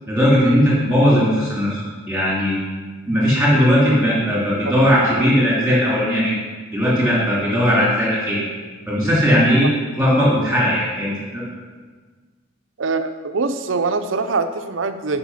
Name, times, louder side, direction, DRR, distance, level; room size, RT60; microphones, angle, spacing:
voice 1, 0.1-1.8 2.1-2.6 3.0-6.4 6.7-8.4 8.9-9.7 10.0-11.4, equal, 5° right, -7 dB, 2.9 m, -17 dB
voice 2, 12.8-15.2, right 4 dB, 75° right, 9 dB, 0.7 m, -23 dB
11.5 x 5.3 x 5.7 m, 1.5 s
head